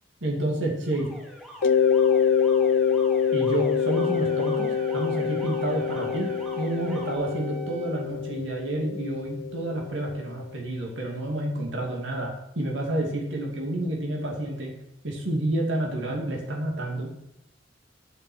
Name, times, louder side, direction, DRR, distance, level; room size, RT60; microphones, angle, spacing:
voice 1, 0.2-1.1 3.3-6.3 6.6-14.7 15.0-17.1, right 1 dB, 80° right, 0 dB, 2.6 m, -29 dB
Alarm, 0.6-7.1, equal, 5° right, 2.8 m, -43 dB
Mallet percussion, 1.6-10.2, left 7 dB, 75° left, 0.5 m, -25 dB
Wind instrument woodwind instrument, 3.8-8.1, right 6 dB, 35° right, 1.2 m, -45 dB
9.2 x 6.1 x 8.0 m, 0.82 s
head